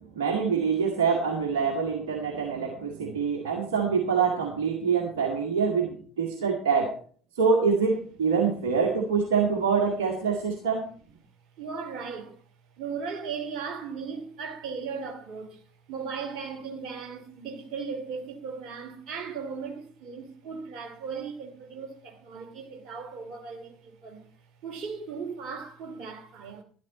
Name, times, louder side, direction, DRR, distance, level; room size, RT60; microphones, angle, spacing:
voice 1, 0.2-6.9 7.4-10.9, right 5 dB, 65° right, 2.0 m, -25 dB
voice 2, 11.6-12.4 12.8-15.6 15.9-24.3 24.6-26.6, right 5 dB, 50° right, 2.8 m, -37 dB
12.5 x 12.0 x 4.1 m
figure-of-eight pair, 55°, 0 cm